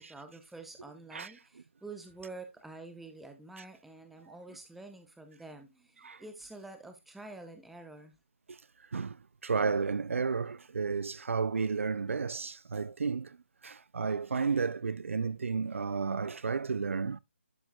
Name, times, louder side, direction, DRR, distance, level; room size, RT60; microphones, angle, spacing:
voice 1, 0.0-8.2, right 3 dB, ahead, 0.6 m, -48 dB
voice 2, 8.9-13.4 13.6-17.2, right 5 dB, 70° right, 0.4 m, -32 dB
11.5 x 4.5 x 2.3 m
hypercardioid pair, 160°, 7 cm